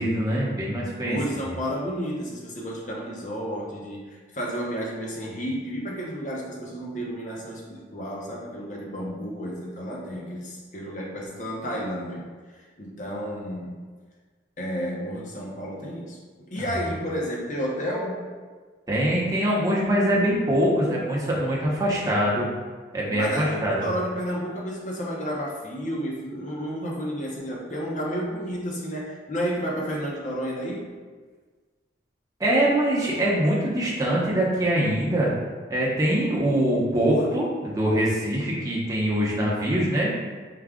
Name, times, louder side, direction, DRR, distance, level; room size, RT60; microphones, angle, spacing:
voice 1, 0.0-1.2 16.6-16.7 18.9-22.5 22.9-23.9 32.4-35.3 35.7-40.1, right 1 dB, 20° right, -5 dB, 0.8 m, -23 dB
voice 2, 1.0-12.2 12.5-13.8 14.6-16.2 16.5-18.3 23.1-30.9, equal, 40° left, -3 dB, 0.7 m, -31 dB
4.8 x 2.3 x 3.6 m, 1.5 s
head